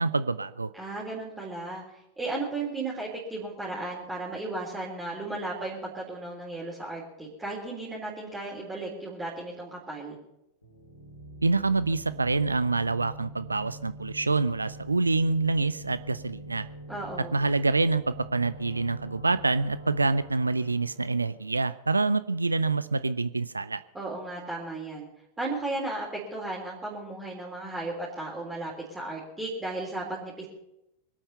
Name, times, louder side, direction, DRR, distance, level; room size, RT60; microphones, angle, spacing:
voice 1, 0.0-0.7 11.4-16.7 17.3-23.8, right 3 dB, 80° right, 15 dB, 0.4 m, -26 dB
voice 2, 0.7-1.8 2.2-10.2 16.9-17.4 23.9-25.1 25.4-30.5, right 2 dB, 10° right, -4 dB, 3.9 m, -35 dB
sound 1, 10.6-22.2, right 1 dB, 75° left, 4.3 m, -45 dB
24.0 x 8.9 x 5.6 m, 0.87 s
figure-of-eight pair, 90°, 0 cm